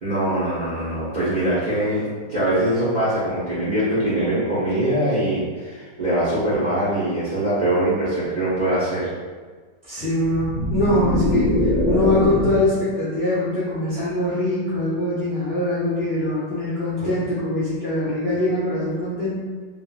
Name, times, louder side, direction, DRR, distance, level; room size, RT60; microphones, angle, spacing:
voice 1, 0.0-9.1, right 1 dB, 85° right, -11 dB, 0.4 m, -22 dB
voice 2, 9.8-19.3, left 1 dB, 75° left, -11 dB, 0.5 m, -23 dB
sound 1, 10.2-12.7, left 1 dB, 10° right, 0.5 m, -22 dB
3.7 x 2.1 x 2.3 m, 1.5 s
omnidirectional pair, 2.0 m